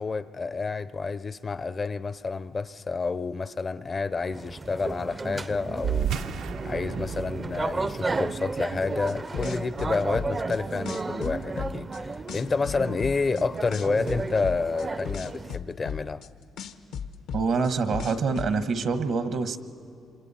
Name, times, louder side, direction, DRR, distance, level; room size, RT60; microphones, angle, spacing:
voice 1, 0.0-6.1 6.6-16.2, left 4 dB, 35° left, 0.5 m, -29 dB
sound 1, 4.3-15.6, right 3 dB, 30° right, 0.5 m, -33 dB
sound 2, 5.8-10.7, right 8 dB, 85° right, 0.7 m, -34 dB
sound 3, 9.1-10.6 10.9-12.0 12.3-13.4 13.7-16.3 16.6-18.5, left 8 dB, 85° left, 0.9 m, -35 dB
voice 2, 17.3-19.6, right 4 dB, 65° right, 1.1 m, -26 dB
26.5 x 26.5 x 4.2 m
cardioid pair, 90°, 0 cm